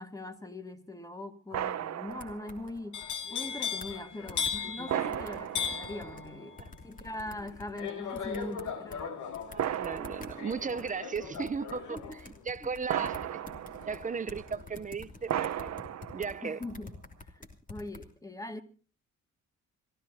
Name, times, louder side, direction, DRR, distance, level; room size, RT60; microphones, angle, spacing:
voice 1, 0.0-3.0 3.3-6.6 6.8-9.3 11.9-12.2 12.6-12.7 13.0-13.1 16.4-16.9 17.2-18.6, left 2 dB, 10° left, 2.1 m, -41 dB
sound 1, 1.5-2.7 3.9-4.0 4.9-6.6 7.4-7.5 9.6-11.0 12.9-14.5 15.3-16.8, right 10 dB, 60° right, 0.9 m, -36 dB
sound 2, 2.1-3.1 3.5-3.6 3.8-4.0 4.3-4.6 5.1-6.3 6.6-9.0 9.3-16.3 16.6-18.0, left 3 dB, 25° left, 2.9 m, -48 dB
sound 3, 2.9-14.9 15.2-15.7, left 7 dB, 80° left, 2.3 m, -39 dB
voice 2, 9.5-12.0 12.5-13.4 13.9-15.7 16.1-16.6, right 5 dB, 25° right, 0.7 m, -36 dB
26.5 x 14.0 x 2.8 m
cardioid pair, 90°, 30 cm